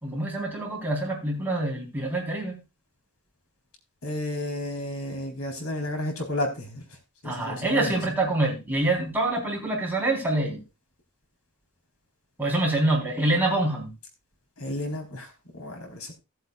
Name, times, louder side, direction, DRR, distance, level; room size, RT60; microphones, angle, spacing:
voice 1, 0.0-2.6 7.2-10.6 12.4-13.9, right 2 dB, 10° right, -2 dB, 3.9 m, -26 dB
voice 2, 4.0-6.8 7.2-7.9 14.6-16.2, left 1 dB, 75° left, 2 dB, 4.0 m, -32 dB
18.5 x 8.1 x 2.4 m, 0.26 s
head